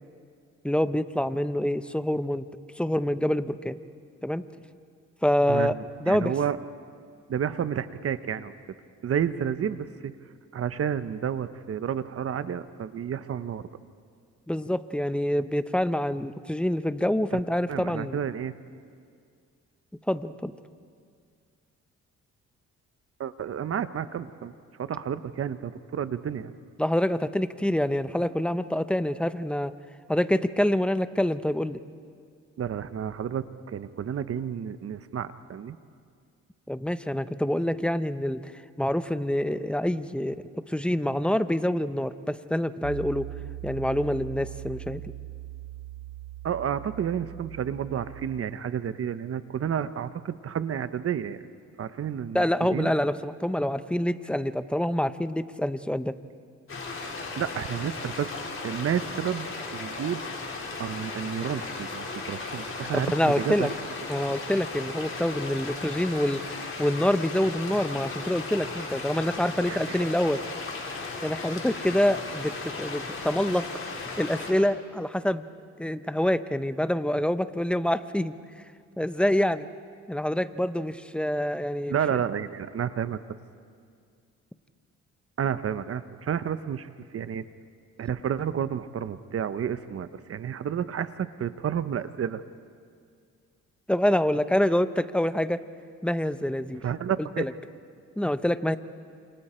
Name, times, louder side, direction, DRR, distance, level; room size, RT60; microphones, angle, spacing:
voice 1, 0.6-2.4 2.8-3.8 4.2-4.4 5.2-5.7 6.0-6.3 14.5-18.2 20.1-20.5 26.8-29.7 30.1-31.8 36.7-38.5 38.8-43.3 43.6-45.0 52.3-56.1 62.9-63.7 64.1-70.4 71.2-73.7 74.2-75.5 75.8-78.3 79.0-79.7 80.1-82.0 93.9-95.6 96.0-96.8 97.4-97.5 98.2-98.8, left 1 dB, 5° left, 12 dB, 0.8 m, -26 dB
voice 2, 5.5-6.6 7.3-8.5 9.0-10.1 10.5-13.7 17.3-17.4 17.7-18.5 23.2-24.5 24.8-26.5 32.6-35.8 46.4-51.4 51.8-52.9 57.4-58.3 58.6-60.2 60.8-63.7 69.7-70.0 81.9-83.2 85.4-87.4 88.0-92.4 96.8-97.4, right 8 dB, 50° right, 13 dB, 0.9 m, -31 dB
Piano, 42.8-48.4, right 15 dB, 75° right, 0.6 m, -40 dB
sound 1, 56.7-74.5, left 3 dB, 45° left, 4.5 m, -36 dB
29.0 x 27.0 x 4.4 m, 2.2 s
cardioid pair, 90°, 30 cm